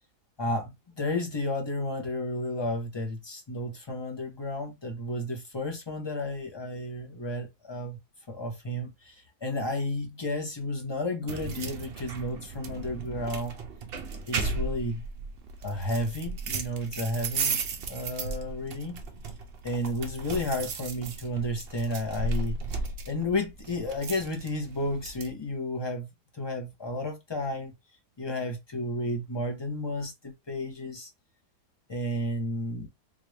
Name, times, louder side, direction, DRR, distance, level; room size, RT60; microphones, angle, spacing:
voice 1, 0.4-8.0 8.3-9.1 9.4-13.5 14.3-15.0 15.6-17.6 17.9-19.0 19.6-22.6 23.1-26.1 26.3-27.7 28.2-31.1 31.9-32.9, left 1 dB, 25° left, 0.7 m, -32 dB
sound 1, 11.3-25.3, right 3 dB, 60° right, 0.6 m, -35 dB
3.7 x 2.5 x 3.2 m
omnidirectional pair, 1.8 m